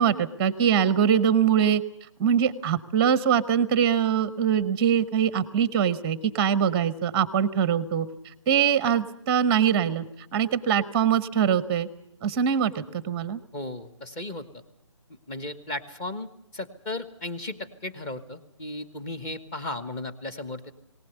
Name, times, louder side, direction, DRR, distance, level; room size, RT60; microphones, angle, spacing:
voice 1, 0.0-1.8 2.2-8.1 8.5-10.0 10.3-11.9 12.2-13.4, right 8 dB, 15° right, 16 dB, 0.8 m, -23 dB
voice 2, 13.5-14.5 15.3-16.3 16.5-20.7, left 2 dB, 15° left, 11 dB, 1.4 m, -35 dB
19.5 x 19.0 x 8.1 m, 0.76 s
figure-of-eight pair, 155°, 17 cm